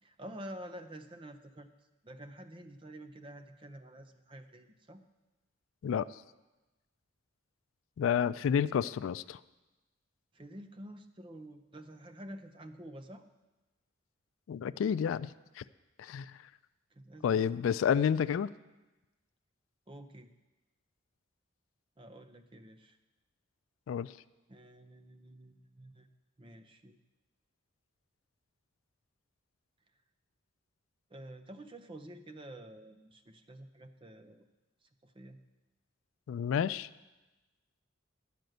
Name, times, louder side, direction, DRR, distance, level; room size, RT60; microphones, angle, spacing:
voice 1, 0.0-1.7 2.0-5.0 10.3-13.2 16.9-17.4 19.9-20.3 22.0-23.0 24.5-26.1 26.4-27.0 31.1-34.5 34.8-35.4, right 1 dB, 25° right, 8 dB, 0.6 m, -49 dB
voice 2, 8.0-9.4 14.5-15.6 16.0-16.3 17.2-18.5 23.9-24.1 36.3-36.9, left 8 dB, 80° left, 17 dB, 0.3 m, -30 dB
12.0 x 5.1 x 7.9 m, 1.1 s
head